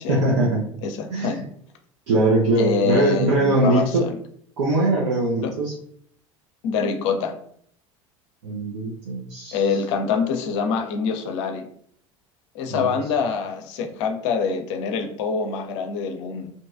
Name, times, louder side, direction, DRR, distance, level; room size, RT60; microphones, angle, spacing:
voice 1, 0.1-0.7 1.1-1.4 2.1-4.0 4.6-5.7 8.4-9.6 12.7-13.0, right 2 dB, 70° right, -4 dB, 0.6 m, -21 dB
voice 2, 0.8-1.4 2.6-4.2 5.4-5.5 6.6-7.4 9.5-11.7 12.5-16.5, left 5 dB, 65° left, 6 dB, 0.5 m, -25 dB
2.6 x 2.2 x 2.4 m, 0.63 s
hypercardioid pair, 70°, 16 cm